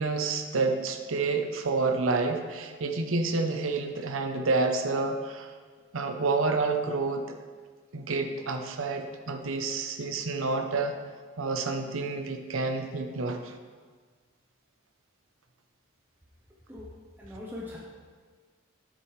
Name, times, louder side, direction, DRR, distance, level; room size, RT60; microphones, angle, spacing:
voice 1, 0.0-5.5 5.9-7.4 7.9-11.0 11.4-13.5, right 3 dB, 80° right, 5 dB, 0.7 m, -29 dB
voice 2, 16.7-17.8, left 2 dB, 10° right, -5 dB, 0.8 m, -41 dB
10.0 x 7.5 x 3.2 m, 1.5 s
head